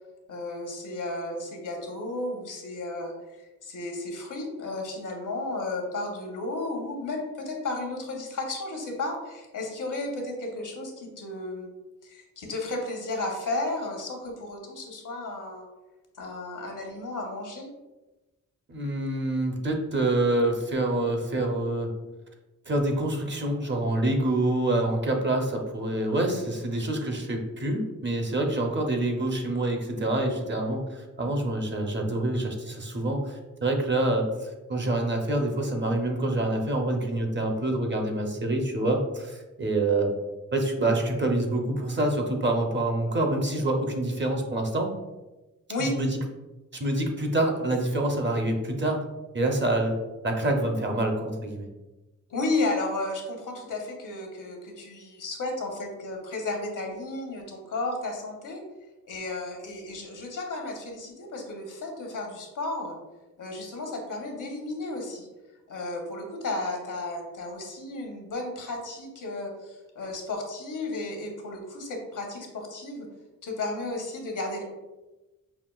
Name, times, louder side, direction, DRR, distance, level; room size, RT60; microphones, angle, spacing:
voice 1, 0.3-3.1 3.6-11.7 12.0-15.7 16.2-17.7 45.7-45.9 52.3-58.6 59.0-63.0 63.4-65.3 65.7-73.1 73.4-74.6, left 2 dB, 75° left, 2 dB, 0.9 m, -33 dB
voice 2, 18.7-21.9 22.7-40.1 40.5-44.9 45.8-46.2 46.7-49.0 49.3-49.9 50.2-51.7, right 2 dB, 35° right, 2 dB, 0.6 m, -26 dB
5.6 x 2.5 x 2.3 m, 1.1 s
wide cardioid pair, 95°, 31 cm